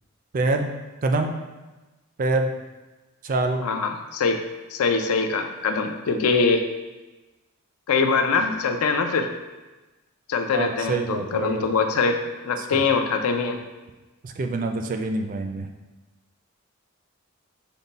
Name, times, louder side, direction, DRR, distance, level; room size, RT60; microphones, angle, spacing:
voice 1, 0.3-0.7 1.0-1.3 2.2-2.5 3.2-3.7 8.4-8.6 10.5-11.7 12.6-12.7 14.2-15.7, right 2 dB, 40° right, 5 dB, 0.3 m, -25 dB
voice 2, 3.6-4.4 4.7-6.6 7.9-9.3 10.3-13.6, left 4 dB, 90° left, 6 dB, 0.4 m, -23 dB
5.2 x 2.2 x 4.0 m, 1.1 s
head